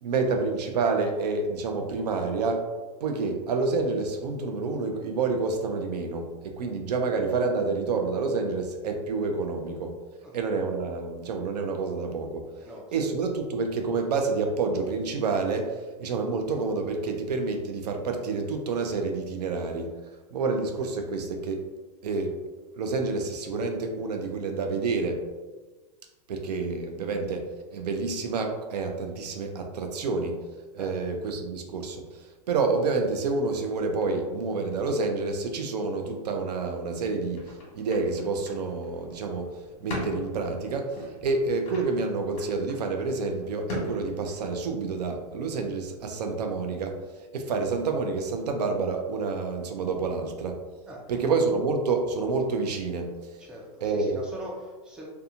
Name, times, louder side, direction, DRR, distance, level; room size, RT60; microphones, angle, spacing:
voice 1, 0.0-2.7 3.0-9.9 10.3-12.5 12.9-19.9 20.3-21.7 22.0-22.4 22.7-25.2 26.3-30.4 30.7-39.5 39.8-47.0 47.3-50.6 51.1-53.3 53.8-54.2, right 4 dB, 85° right, 4 dB, 0.5 m, -28 dB
voice 2, 12.6-13.1 30.8-31.0 50.9-51.2 53.4-55.1, equal, 5° right, -3 dB, 0.4 m, -42 dB
sound 1, 37.3-44.7, left 1 dB, 35° left, 1.2 m, -41 dB
2.7 x 2.3 x 2.5 m, 1.3 s
hypercardioid pair, 135°, 20 cm